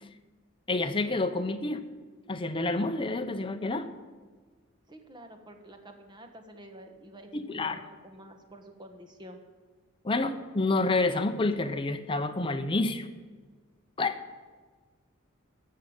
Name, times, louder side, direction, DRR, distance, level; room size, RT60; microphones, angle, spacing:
voice 1, 0.7-1.8 2.3-3.9 7.3-7.8 10.0-13.1 14.0-14.2, left 2 dB, 25° left, 7 dB, 0.7 m, -28 dB
voice 2, 4.9-9.4, right 1 dB, 20° right, 5 dB, 1.3 m, -49 dB
14.0 x 6.6 x 8.7 m, 1.4 s
head